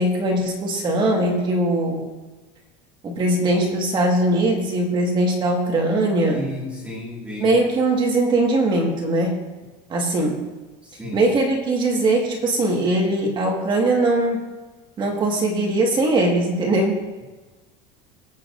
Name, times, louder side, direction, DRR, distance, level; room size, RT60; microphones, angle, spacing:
voice 1, 0.0-2.0 3.0-6.5 7.4-9.4 9.9-10.4 11.1-14.5 15.0-17.0, right 2 dB, 25° right, 1 dB, 1.6 m, -20 dB
voice 2, 6.3-7.6 10.8-11.2, left 1 dB, 5° right, -4 dB, 2.0 m, -33 dB
22.5 x 8.4 x 2.6 m, 1.2 s
cardioid pair, 175°, 19 cm